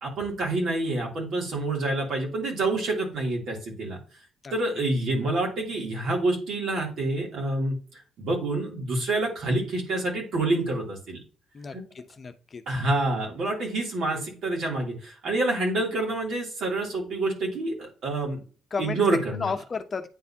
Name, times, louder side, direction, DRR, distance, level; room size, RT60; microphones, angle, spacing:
voice 1, 0.0-4.0 4.5-7.8 8.2-11.2 11.7-11.8 12.7-18.4 18.8-19.5, right 2 dB, 70° right, -1 dB, 3.0 m, -27 dB
voice 2, 11.5-12.6 18.7-19.0 19.4-20.1, left 5 dB, 40° left, 8 dB, 0.7 m, -33 dB
9.1 x 4.1 x 2.8 m, 0.37 s
cardioid pair, 90°, 0 cm